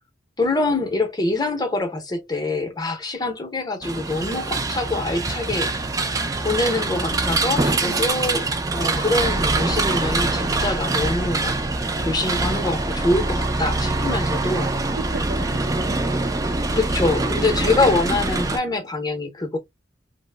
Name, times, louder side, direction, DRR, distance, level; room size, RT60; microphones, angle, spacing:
voice 1, 0.4-5.7 6.4-11.5 12.0-14.9 16.7-19.6, left 2 dB, 20° left, 0.7 m, -24 dB
sound 1, 3.8-18.6, right 2 dB, 20° right, 0.4 m, -24 dB
voice 2, 14.9-16.5 17.3-17.6, right 4 dB, 70° right, 0.6 m, -37 dB
3.0 x 2.0 x 3.3 m
head